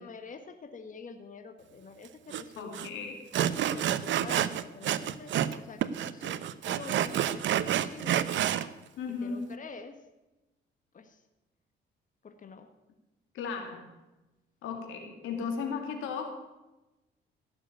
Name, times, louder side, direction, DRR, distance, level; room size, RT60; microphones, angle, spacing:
voice 1, 0.0-2.9 3.6-8.3 9.1-10.0 10.9-11.2 12.2-12.7, left 5 dB, 40° left, 6 dB, 1.5 m, -46 dB
Sawing, 2.3-2.4 2.7-2.9 3.3-5.6 5.8-8.7, right 10 dB, 70° right, 0.8 m, -29 dB
voice 2, 2.6-3.2 9.0-9.5 13.3-13.9 14.6-16.3, left 5 dB, 85° left, 4 dB, 2.7 m, -35 dB
15.5 x 7.1 x 8.9 m, 1.0 s
cardioid pair, 90°, 20 cm